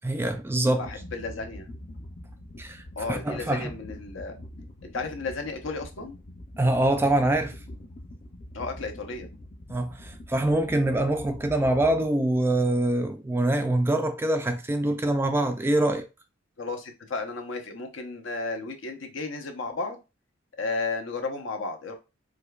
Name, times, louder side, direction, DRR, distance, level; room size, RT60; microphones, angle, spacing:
voice 1, 0.0-0.9 2.6-2.8 3.1-3.7 6.6-7.6 9.7-16.0, right 1 dB, 10° right, 0.3 m, -24 dB
voice 2, 0.8-1.7 3.0-4.4 4.8-6.2 8.5-9.3 16.6-20.0 20.6-21.9, left 3 dB, 70° left, 0.8 m, -33 dB
sound 1, 0.8-12.1, left 1 dB, 40° left, 0.5 m, -44 dB
4.9 x 2.2 x 2.3 m
head